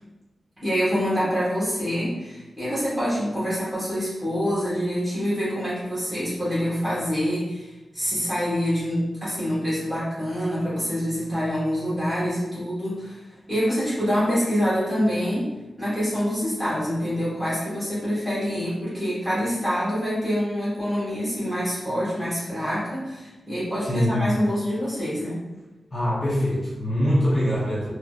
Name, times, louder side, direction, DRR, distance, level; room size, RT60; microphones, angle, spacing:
voice 1, 0.6-7.7 7.9-13.2 13.5-15.5 15.8-25.4, equal, 5° right, -10 dB, 1.5 m, -26 dB
voice 2, 23.8-24.3 25.9-27.9, equal, 25° left, -10 dB, 0.8 m, -23 dB
3.6 x 2.9 x 2.4 m, 1.1 s
wide cardioid pair, 180°, 0 cm